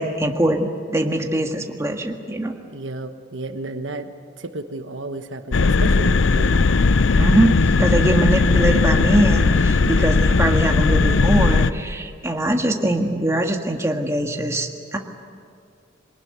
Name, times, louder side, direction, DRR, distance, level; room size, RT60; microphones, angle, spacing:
voice 1, 0.0-2.5 7.2-15.0, right 1 dB, 15° right, 2 dB, 1.7 m, -22 dB
voice 2, 2.7-4.1 4.4-6.7, right 2 dB, 80° right, 7 dB, 1.3 m, -32 dB
sound 1, 5.5-11.7, left 3 dB, 85° left, 0.6 m, -17 dB
24.0 x 20.0 x 9.4 m, 2.1 s
head